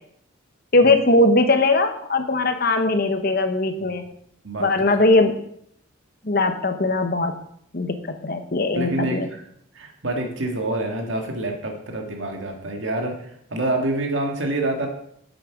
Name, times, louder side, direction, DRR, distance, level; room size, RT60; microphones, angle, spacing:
voice 1, 0.7-4.0 4.6-5.3 6.2-7.3 7.7-8.0 8.2-9.3, left 2 dB, 50° left, 7 dB, 1.1 m, -19 dB
voice 2, 4.4-5.1 8.8-9.4 9.7-14.9, right 2 dB, 75° right, 2 dB, 2.1 m, -27 dB
8.8 x 7.7 x 6.1 m, 0.71 s
head